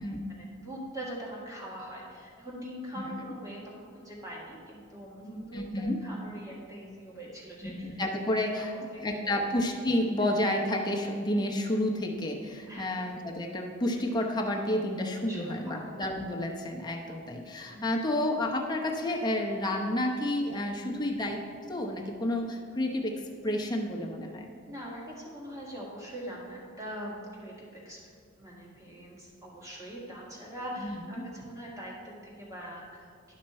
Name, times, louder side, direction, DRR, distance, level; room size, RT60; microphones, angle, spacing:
voice 1, 0.3-8.0 8.6-8.7 8.9-9.4 12.7-12.9 15.3-16.0 17.7-17.9 24.7-28.0 28.4-33.3, equal, 15° right, -4 dB, 1.8 m, -42 dB
voice 2, 5.4-6.0 7.6-8.7 9.0-24.5 30.8-31.0, left 1 dB, 20° left, 1 dB, 0.8 m, -30 dB
11.5 x 5.9 x 4.3 m, 2.2 s
head